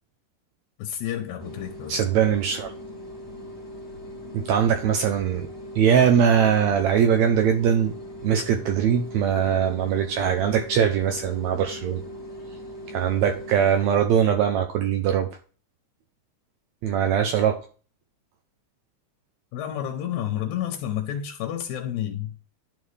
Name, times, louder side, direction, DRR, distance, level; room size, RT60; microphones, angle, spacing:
voice 1, 0.8-2.0 19.5-22.3, left 10 dB, 75° left, 2.2 m, -30 dB
sound 1, 1.4-14.0, equal, 20° left, 2.6 m, -40 dB
voice 2, 1.9-2.7 4.3-5.5 5.8-7.9 8.2-12.0 12.9-15.3 16.8-17.6, right 8 dB, 75° right, 1.8 m, -21 dB
11.0 x 3.9 x 3.2 m
omnidirectional pair, 3.5 m